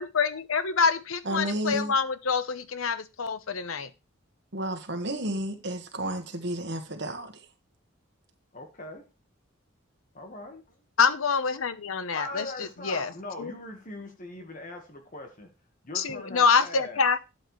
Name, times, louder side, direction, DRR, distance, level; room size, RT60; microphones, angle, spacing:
voice 1, 0.0-3.9 11.0-12.5 12.8-13.1 13.4-13.5 15.9-17.2, left 5 dB, 85° left, 0.9 m, -26 dB
voice 2, 1.2-1.9 4.5-7.3, right 1 dB, 55° right, 1.6 m, -32 dB
voice 3, 8.5-9.1 10.1-10.8 12.1-15.5 15.8-17.0, left 2 dB, 40° left, 1.5 m, -40 dB
12.0 x 7.9 x 3.2 m
head